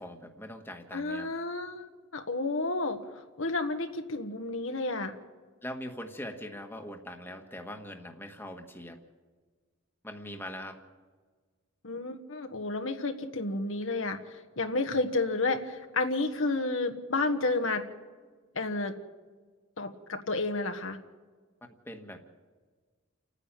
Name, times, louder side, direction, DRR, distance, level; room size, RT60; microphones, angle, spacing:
voice 1, 0.0-1.3 5.6-9.0 10.0-10.8 21.8-22.2, left 1 dB, 10° left, 4 dB, 1.5 m, -42 dB
voice 2, 0.9-1.9 2.1-3.0 3.4-5.1 11.8-14.2 14.6-17.8 18.5-18.9 19.8-21.0, left 2 dB, 70° left, 6 dB, 1.4 m, -31 dB
29.5 x 9.9 x 9.0 m, 1.5 s
head